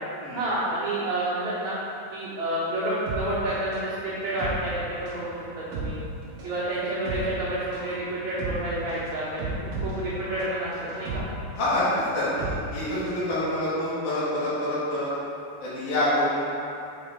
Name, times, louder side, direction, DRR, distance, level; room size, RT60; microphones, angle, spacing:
voice 1, 0.3-1.8 2.1-6.0 6.4-11.2, right 1 dB, 80° right, -11 dB, 1.6 m, -29 dB
sound 1, 3.1-13.3 13.6-13.7, right 2 dB, 65° right, 1.9 m, -35 dB
voice 2, 11.5-15.1 15.6-16.4, left 1 dB, 60° left, -10 dB, 2.3 m, -26 dB
7.1 x 4.8 x 3.7 m, 2.6 s
omnidirectional pair, 4.9 m